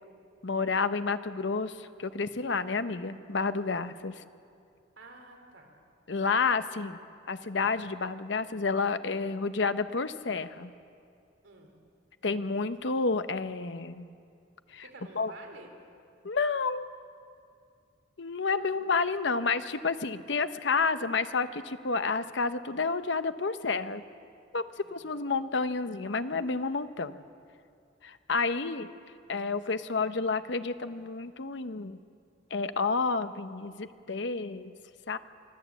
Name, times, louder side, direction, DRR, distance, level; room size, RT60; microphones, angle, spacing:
voice 1, 0.4-4.1 6.1-7.0 7.3-10.7 12.2-14.1 14.7-14.8 15.2-15.3 16.2-16.9 18.2-24.0 24.5-27.2 28.0-28.9 29.3-32.0 32.5-34.7 35.1-35.2, left 4 dB, 65° left, 11 dB, 0.9 m, -30 dB
voice 2, 5.0-5.8 11.4-11.7 14.8-15.7 18.6-18.7 24.8-25.0, right 2 dB, 75° right, 3 dB, 3.5 m, -50 dB
25.0 x 14.0 x 8.3 m, 2.3 s
head